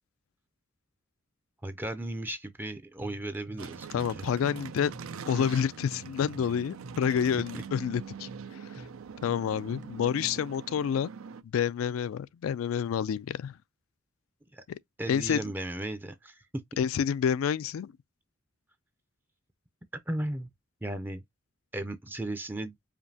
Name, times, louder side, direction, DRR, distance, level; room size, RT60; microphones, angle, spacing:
voice 1, 1.6-4.3 7.3-7.6 14.5-14.6 15.0-16.5 20.1-20.5 20.8-21.2 21.7-22.7, right 1 dB, 10° right, 0.4 m, -36 dB
sound 1, 3.0-10.6, equal, 40° right, 0.8 m, -49 dB
sound 2, 3.6-11.4, right 6 dB, 80° right, 0.4 m, -43 dB
voice 2, 3.9-4.9 5.3-8.3 8.7-8.8 9.2-11.1 11.4-13.6 14.7-14.8 15.1-15.4 16.8-17.9, left 8 dB, 80° left, 0.3 m, -28 dB
5.0 x 2.6 x 2.7 m
head